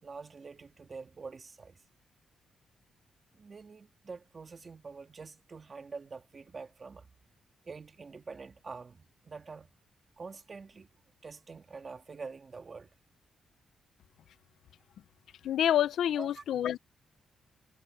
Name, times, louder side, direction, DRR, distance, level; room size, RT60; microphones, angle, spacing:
voice 1, 0.0-1.8 3.3-7.1 7.6-9.7 10.2-10.9 11.2-12.9 16.1-16.4, right 4 dB, 35° right, 2.2 m, -46 dB
voice 2, 15.4-16.8, left 10 dB, 80° left, 0.6 m, -27 dB
cardioid pair, 95°, 0 cm